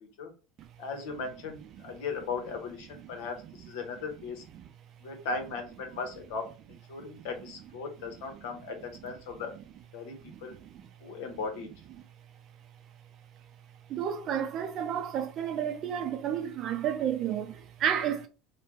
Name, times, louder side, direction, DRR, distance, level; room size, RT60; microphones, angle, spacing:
voice 1, 0.8-4.4 5.0-6.4 6.7-9.5 9.9-10.5 11.0-11.7, left 4 dB, 70° left, 0.9 m, -37 dB
voice 2, 10.2-10.9 13.9-18.3, right 9 dB, 50° right, 0.5 m, -31 dB
3.3 x 2.2 x 2.9 m
hypercardioid pair, 85°, 0 cm